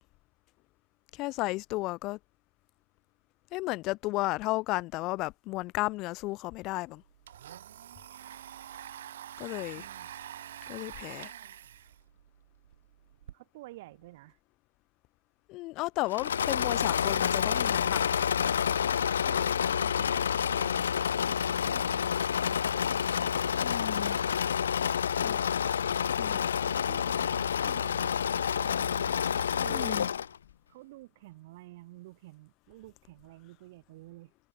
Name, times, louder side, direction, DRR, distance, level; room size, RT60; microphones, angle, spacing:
voice 1, 1.1-2.2 3.5-7.0 9.4-9.9 10.7-11.3 15.5-18.2 23.5-24.2 25.2-25.4 26.2-26.5 29.7-30.1, left 21 dB, 30° left, 1.4 m, -33 dB
Domestic sounds home sounds, 6.3-6.4 6.7-13.3, right 11 dB, 60° right, 6.4 m, -46 dB
voice 2, 9.7-10.1 13.3-14.4 19.2-20.9 21.2-23.5 26.6-28.2 28.6-29.2 29.5-30.0 30.7-34.3, right 18 dB, 45° right, 3.2 m, -50 dB
Engine / Mechanisms, 16.1-30.4, left 8 dB, 75° left, 0.9 m, -28 dB
hypercardioid pair, 145°, 0 cm